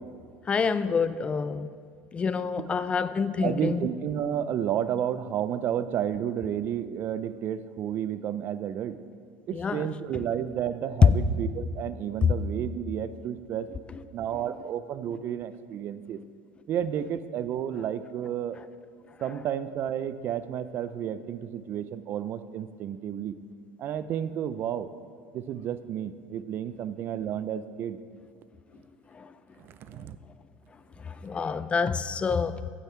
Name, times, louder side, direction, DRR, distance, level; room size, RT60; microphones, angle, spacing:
voice 1, 0.5-1.7 2.1-3.8 9.5-9.9 29.2-29.3 31.1-32.5, left 5 dB, 20° left, 0.4 m, -28 dB
voice 2, 3.4-9.0 9.5-13.7 14.1-16.2 16.7-18.6 19.2-23.4 23.8-24.9 25.3-28.0 29.6-30.2, right 9 dB, 45° right, 0.5 m, -31 dB
14.5 x 6.9 x 4.5 m
supercardioid pair, 125°, 5 cm